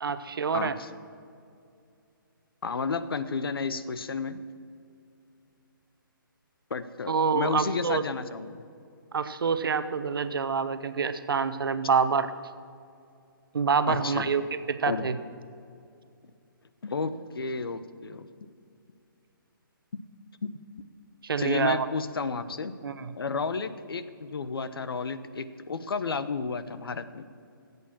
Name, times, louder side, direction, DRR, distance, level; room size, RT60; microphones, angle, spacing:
voice 1, 0.0-0.7 7.1-8.0 9.1-12.3 13.5-15.1 21.2-21.9 22.8-23.1, right 6 dB, 75° right, 12 dB, 0.8 m, -27 dB
voice 2, 0.5-0.9 2.6-4.4 6.7-8.6 13.9-14.3 14.9-15.1 16.8-18.3 20.4-20.5 21.4-22.7 23.2-27.3, left 4 dB, 85° left, 13 dB, 0.8 m, -32 dB
13.0 x 8.3 x 7.2 m, 2.5 s
hypercardioid pair, 165°, 12 cm